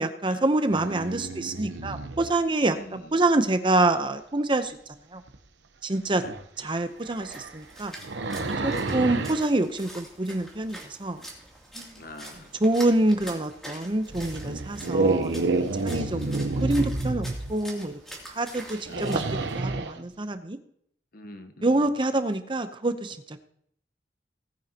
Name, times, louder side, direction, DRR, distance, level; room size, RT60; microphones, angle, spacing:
voice 1, 0.0-4.8 5.1-5.2 5.8-6.2 6.6-7.9 8.6-11.2 11.8-11.9 12.6-15.4 15.8-17.9 18.4-19.3 19.5-20.6 21.6-23.4, right 2 dB, 30° right, 9 dB, 0.8 m, -26 dB
sound 1, 0.7-2.3 5.3-5.4 6.2-6.4 7.0-9.4 13.2-13.3 14.1-17.5 18.7-20.0, right 2 dB, 85° right, 1.0 m, -29 dB
voice 2, 2.7-3.2 6.1-6.3 8.6-9.1 12.0-12.5 14.9-15.2 16.1-16.5 18.8-19.2 21.1-21.9, left 1 dB, 55° left, 8 dB, 1.1 m, -45 dB
Splash splatter, 6.8-19.6, right 1 dB, ahead, 2.8 m, -45 dB
18.5 x 9.2 x 2.9 m, 0.67 s
head